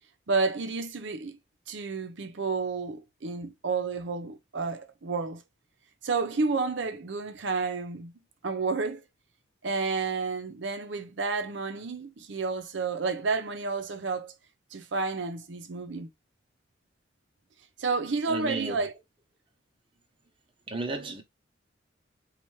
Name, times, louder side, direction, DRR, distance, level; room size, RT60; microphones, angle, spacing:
voice 1, 0.3-1.4 1.7-5.4 6.0-8.1 8.4-9.0 9.6-14.3 14.7-16.1 17.8-18.9, right 4 dB, 75° right, 0.7 m, -30 dB
voice 2, 18.3-18.9 20.7-21.2, right 2 dB, 30° right, 0.8 m, -33 dB
4.4 x 2.4 x 3.1 m
head